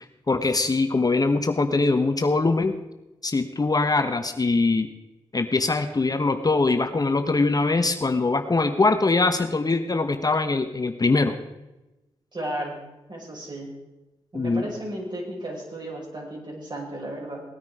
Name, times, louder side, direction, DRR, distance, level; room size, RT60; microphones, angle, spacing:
voice 1, 0.3-2.7 3.2-4.9 5.3-11.4 14.3-14.6, left 3 dB, 35° left, 7 dB, 1.1 m, -22 dB
voice 2, 12.3-12.8 13.1-13.7 14.3-17.4, right 1 dB, 40° right, -1 dB, 6.1 m, -34 dB
18.5 x 9.5 x 5.0 m, 1.0 s
supercardioid pair, 45°, 11 cm